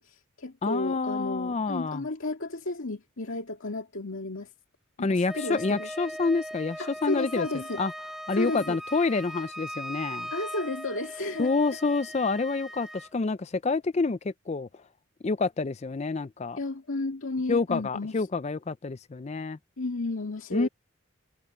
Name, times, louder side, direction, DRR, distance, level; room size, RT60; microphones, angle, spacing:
voice 1, 0.0-4.5 5.0-5.9 6.8-7.8 8.3-8.8 10.3-11.5 16.6-18.1 19.8-20.7, left 2 dB, 75° left, 2.1 m, -33 dB
voice 2, 0.6-2.0 5.0-7.5 7.8-7.9 8.3-10.3 11.4-14.7 15.2-16.6 17.5-19.6 20.5-20.7, left 3 dB, 30° left, 0.4 m, -28 dB
Wind instrument woodwind instrument, 5.2-13.1, equal, ahead, 1.5 m, -40 dB
head